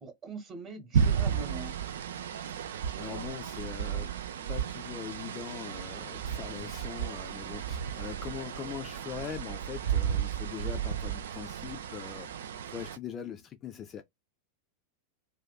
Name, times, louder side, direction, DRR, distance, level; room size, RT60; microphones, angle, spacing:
voice 1, 0.0-1.8, right 2 dB, 25° right, 1.0 m, -42 dB
sound 1, 0.9-13.0, right 8 dB, 60° right, 0.3 m, -33 dB
voice 2, 3.0-4.1 4.5-14.0, left 9 dB, 25° left, 0.4 m, -42 dB
2.5 x 2.2 x 2.2 m
figure-of-eight pair, 90°, 0 cm